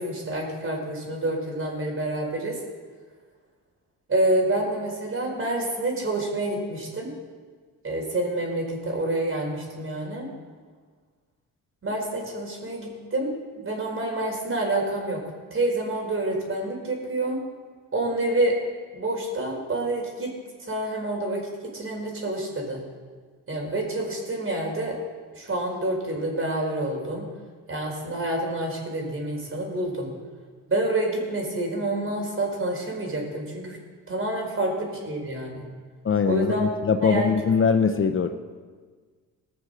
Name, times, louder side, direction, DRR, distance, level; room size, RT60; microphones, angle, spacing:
voice 1, 0.0-2.6 4.1-7.1 7.8-10.3 11.8-15.2 15.5-17.4 17.9-18.6 18.9-20.3 20.7-22.8 23.5-25.0 25.3-27.3 27.7-30.1 30.7-33.8 34.1-35.7 36.2-36.7 37.0-37.3, right 1 dB, 35° right, 1 dB, 4.4 m, -28 dB
voice 2, 36.0-38.3, left 6 dB, 35° left, 8 dB, 0.8 m, -22 dB
19.5 x 6.6 x 6.5 m, 1.5 s
cardioid pair, 80°, 35 cm